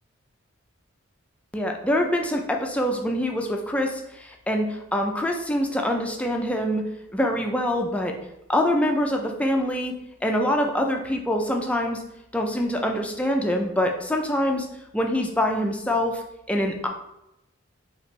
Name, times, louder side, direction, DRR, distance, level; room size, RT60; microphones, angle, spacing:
voice 1, 1.5-6.8 7.1-8.1 8.5-9.9 10.2-12.0 12.3-14.7 14.9-16.9, left 1 dB, 5° left, 2 dB, 0.4 m, -25 dB
5.0 x 2.9 x 3.1 m, 0.86 s
head